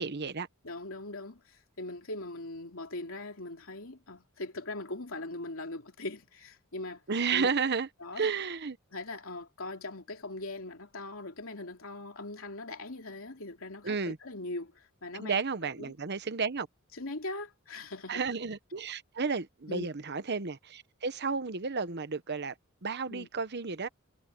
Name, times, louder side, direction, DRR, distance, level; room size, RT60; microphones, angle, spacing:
voice 1, 0.0-0.5 7.1-7.9 8.2-8.8 13.8-14.2 15.2-16.7 18.1-22.5 22.8-23.9, right 5 dB, 55° right, 1.0 m, -32 dB
voice 2, 0.6-7.0 7.3-7.5 8.0-8.3 8.9-15.4 15.8-15.9 17.0-18.2 19.7-19.9 23.1-23.3, left 2 dB, 75° left, 3.1 m, -40 dB
head